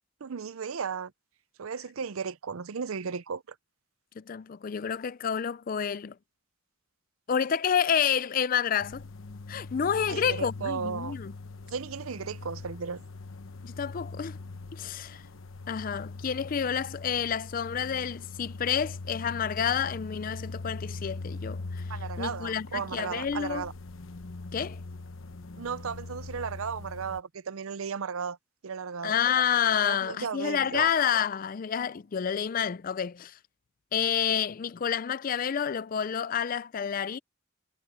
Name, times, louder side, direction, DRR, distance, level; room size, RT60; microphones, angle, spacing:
voice 1, 0.2-1.1 1.6-3.6 10.1-11.2 11.7-13.0 21.9-23.7 25.6-28.4 28.6-29.1 29.8-30.9, right 6 dB, 90° right, 0.6 m, -35 dB
voice 2, 4.2-6.1 7.3-9.0 9.5-11.3 13.6-14.4 14.7-15.2 15.7-21.8 22.2-23.6 24.5-24.8 29.0-33.3 33.9-37.2, left 7 dB, 40° left, 0.4 m, -29 dB
sound 1, 8.8-27.2, left 3 dB, 75° left, 1.0 m, -41 dB
head